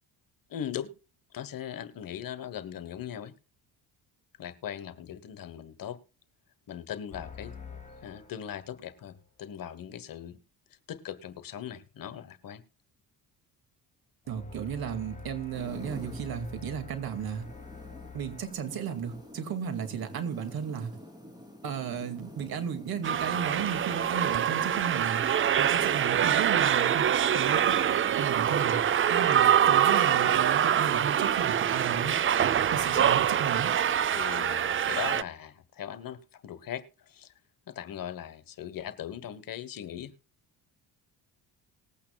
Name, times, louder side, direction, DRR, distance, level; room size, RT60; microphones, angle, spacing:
voice 1, 0.5-0.9 1.3-3.3 4.4-6.0 6.7-7.5 8.0-10.4 10.9-12.6 34.1-37.3 37.7-40.1, left 10 dB, 55° left, 1.3 m, -39 dB
sound 1, 7.1-9.2 14.2-19.9, left 6 dB, 20° left, 6.1 m, -47 dB
voice 2, 14.3-17.5 18.1-20.9 21.6-25.2 25.6-27.1 27.3-28.8 29.1-32.2 32.7-33.7, right 7 dB, 65° right, 2.2 m, -34 dB
sound 2, 15.5-32.5, left 1 dB, 10° right, 3.3 m, -49 dB
sound 3, 23.0-35.2, right 9 dB, 30° right, 0.5 m, -25 dB
19.5 x 8.6 x 2.3 m
cardioid pair, 90°, 40 cm